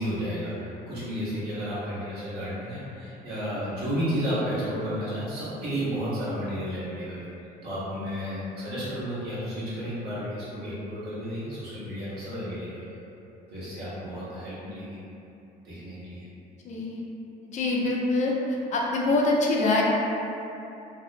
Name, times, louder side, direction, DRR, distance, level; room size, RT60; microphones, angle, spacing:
voice 1, 0.0-7.3 7.6-12.8 13.5-15.0 15.6-16.3, equal, 70° right, -11 dB, 1.1 m, -32 dB
voice 2, 16.6-17.0 17.4-18.3 18.7-19.8, left 2 dB, 45° left, -2 dB, 0.4 m, -24 dB
2.7 x 2.0 x 2.5 m, 2.9 s
cardioid pair, 110°, 17 cm